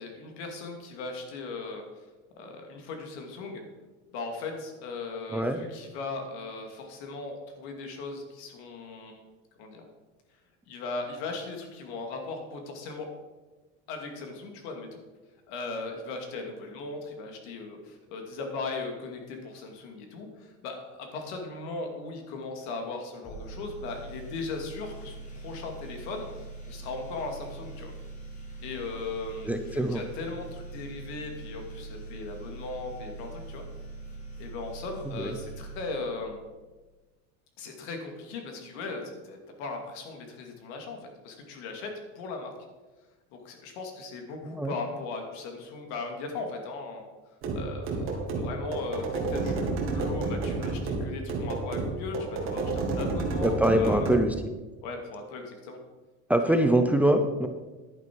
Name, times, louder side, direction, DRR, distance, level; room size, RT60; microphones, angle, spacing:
voice 1, 0.0-2.0 2.4-3.6 4.1-9.2 9.6-9.8 10.7-13.1 13.9-14.9 15.5-26.3 26.7-27.9 28.6-33.6 34.4-36.4 37.6-42.5 43.3-47.0 47.5-54.1 54.8-55.8 56.5-56.8, left 3 dB, 90° left, 3 dB, 2.6 m, -38 dB
sound 1, 23.2-36.6, right 2 dB, 25° left, 2.3 m, -43 dB
voice 2, 29.4-30.0 35.1-35.4 44.5-44.7 53.4-54.3 56.3-57.5, right 1 dB, 5° right, 6 dB, 0.4 m, -24 dB
sound 2, 47.4-54.3, right 3 dB, 40° right, 2.2 m, -30 dB
11.0 x 9.6 x 4.7 m, 1.2 s
cardioid pair, 165°, 33 cm